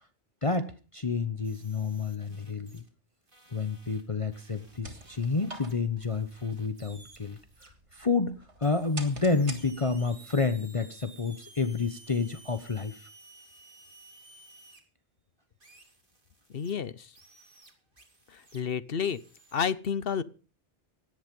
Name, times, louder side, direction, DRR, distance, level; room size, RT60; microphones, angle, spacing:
voice 1, 0.4-2.8 3.5-13.1, left 4 dB, 30° left, 9 dB, 1.0 m, -30 dB
sound 1, 1.4-2.9 3.3-7.7 8.6-14.8 15.6-16.7 17.1-18.6 19.0-19.7, right 2 dB, 50° right, 2.8 m, -56 dB
sound 2, 4.6-10.2, right 2 dB, 90° right, 2.9 m, -47 dB
voice 2, 16.5-17.1 18.3-19.2 19.5-20.2, left 7 dB, 60° left, 17 dB, 1.0 m, -30 dB
17.5 x 11.0 x 5.3 m, 0.36 s
omnidirectional pair, 1.1 m